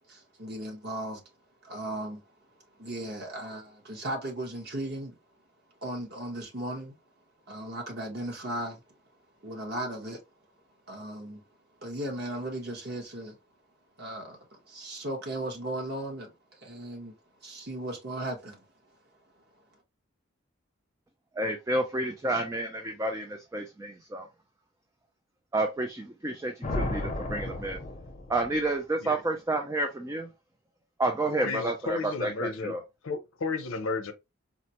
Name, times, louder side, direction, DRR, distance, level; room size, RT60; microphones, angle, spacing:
voice 1, 0.1-1.2 1.6-2.3 2.8-5.2 5.8-6.9 7.5-8.8 9.4-10.2 10.9-11.4 11.8-13.4 14.0-17.1 17.4-18.6, right 1 dB, 50° right, 1.1 m, -36 dB
voice 2, 21.4-24.3 25.5-27.8 28.3-30.3 31.0-32.8, right 2 dB, 15° right, 0.3 m, -30 dB
sound 1, 26.6-28.6, left 1 dB, 35° left, 0.6 m, -33 dB
voice 3, 31.3-32.7 33.0-34.1, left 4 dB, 80° left, 0.6 m, -33 dB
4.0 x 2.1 x 2.9 m
head